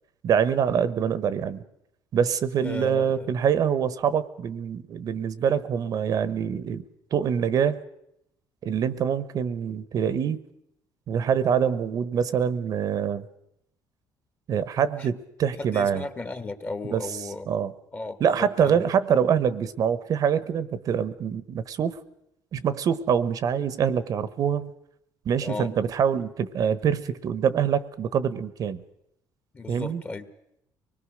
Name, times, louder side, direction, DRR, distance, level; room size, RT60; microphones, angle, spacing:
voice 1, 0.2-1.6 2.1-6.8 7.1-7.8 8.6-10.4 11.1-13.2 14.5-16.0 16.9-17.7 18.2-22.0 22.5-24.7 25.2-28.8 29.7-30.0, right 7 dB, 55° right, 15 dB, 1.2 m, -25 dB
voice 2, 2.6-3.3 15.0-15.1 15.6-17.5 17.9-18.9 25.4-25.7 29.5-30.3, left 3 dB, 25° left, 9 dB, 1.7 m, -35 dB
24.5 x 20.5 x 6.4 m, 0.80 s
cardioid pair, 115°, 8 cm